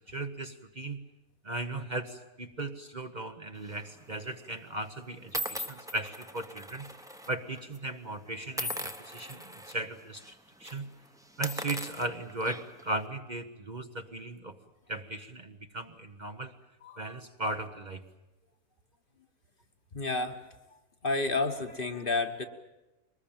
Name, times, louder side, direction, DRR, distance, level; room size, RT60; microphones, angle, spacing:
voice 1, 0.1-1.0 1.4-6.9 7.3-10.3 10.6-10.9 11.4-14.6 14.9-16.5 17.0-18.0, right 2 dB, 35° right, 6 dB, 1.1 m, -37 dB
sound 1, 3.7-4.0 4.7-4.8 5.3-7.3 7.6-7.8 8.5-9.7 10.2-10.3 10.6-10.8 11.3-12.9, equal, 5° right, 1.0 m, -39 dB
voice 2, 16.8-17.2 19.9-20.4 21.0-22.5, left 3 dB, 40° left, 6 dB, 1.4 m, -31 dB
23.0 x 20.0 x 8.9 m, 1.0 s
omnidirectional pair, 1.4 m